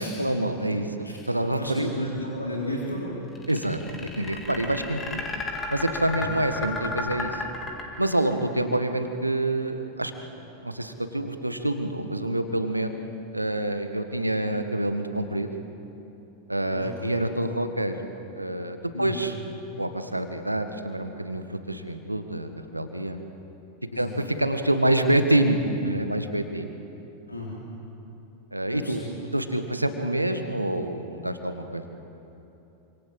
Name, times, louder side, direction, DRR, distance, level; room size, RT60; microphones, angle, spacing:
voice 1, 0.0-2.0 3.5-5.2 5.7-7.4 8.0-13.0 13.3-15.5 16.5-18.0 18.3-19.3 19.8-23.2 24.0-26.7 28.5-29.0 29.3-31.9, right 1 dB, 85° right, 8 dB, 1.7 m, -27 dB
voice 2, 1.4-3.2 6.2-6.4 16.7-17.1 18.9-19.2 23.9-24.2 27.3-27.6 28.7-29.1, left 1 dB, 80° left, -3 dB, 3.7 m, -33 dB
sound 1, 3.4-8.4, left 2 dB, 20° left, 3.7 m, -33 dB
27.5 x 26.0 x 7.7 m, 3.0 s
figure-of-eight pair, 90°, 0 cm